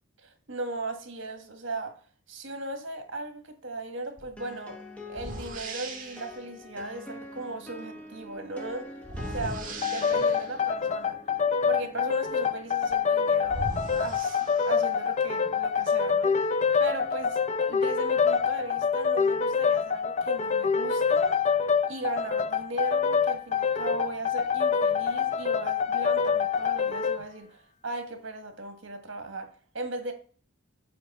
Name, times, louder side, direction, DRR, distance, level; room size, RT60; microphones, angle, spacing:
voice 1, 0.2-2.0 2.3-4.8 5.1-9.0 9.3-11.2 11.6-16.5 16.8-21.4 21.9-30.1, right 2 dB, 65° right, 1.5 m, -37 dB
sound 1, 4.2-4.3 5.1-6.4 9.0-10.6 12.9-13.0 13.4-15.1, right 1 dB, 40° right, 1.6 m, -38 dB
sound 2, 4.4-14.0, left 2 dB, 5° left, 0.9 m, -46 dB
sound 3, 9.8-27.2, left 6 dB, 35° left, 0.3 m, -26 dB
7.8 x 3.5 x 5.3 m
head